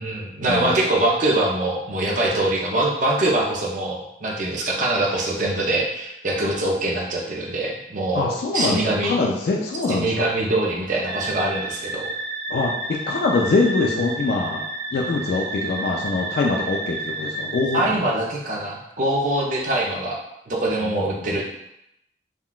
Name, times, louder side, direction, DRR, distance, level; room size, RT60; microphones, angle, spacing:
voice 1, 0.0-9.1 9.9-12.1 17.7-20.2 20.5-21.4, right 1 dB, 45° right, -2 dB, 0.5 m, -23 dB
voice 2, 8.1-10.3 12.5-12.7 13.1-14.7 14.9-17.8, left 3 dB, 60° left, -1 dB, 0.3 m, -23 dB
sound 1, 11.0-17.8, right 2 dB, 70° right, 1.2 m, -31 dB
3.6 x 2.2 x 2.3 m, 0.82 s
head